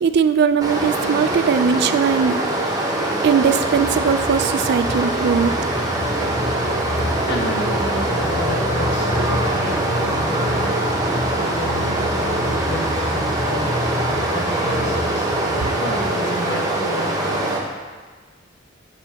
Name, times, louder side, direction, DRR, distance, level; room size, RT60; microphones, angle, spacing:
voice 1, 0.0-2.4 3.2-5.5, right 6 dB, 55° right, 11 dB, 0.3 m, -19 dB
Stream, 0.6-17.6, right 2 dB, 20° right, 0.8 m, -23 dB
sound 1, 3.4-16.5, left 1 dB, 25° left, 0.5 m, -29 dB
voice 2, 7.3-10.7 11.3-15.3 15.8-17.6, left 1 dB, 60° left, 0 dB, 1.0 m, -31 dB
6.9 x 6.8 x 2.8 m, 1.4 s
head